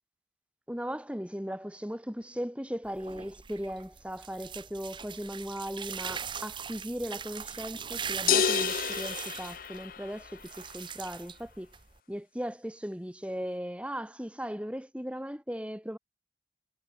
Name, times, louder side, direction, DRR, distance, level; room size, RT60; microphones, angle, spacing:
voice 1, 0.7-11.7 12.1-16.0, equal, 5° right, 2.5 m, -37 dB
sound 1, 2.8-12.0, right 7 dB, 25° right, 0.9 m, -40 dB
sound 2, 8.3-10.3, left 7 dB, 50° left, 0.6 m, -29 dB
head